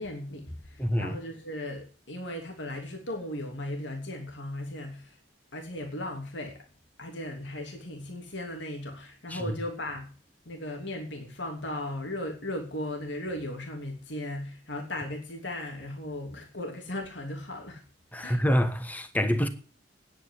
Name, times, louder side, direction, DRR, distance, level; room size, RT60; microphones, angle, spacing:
voice 1, 0.0-5.2 5.5-6.6 7.0-10.1 10.5-17.8 18.2-18.4, left 1 dB, 70° left, 3.0 m, -37 dB
voice 2, 0.8-1.1 9.3-9.4 18.1-19.5, equal, 10° left, 1.3 m, -26 dB
10.0 x 9.1 x 9.7 m
head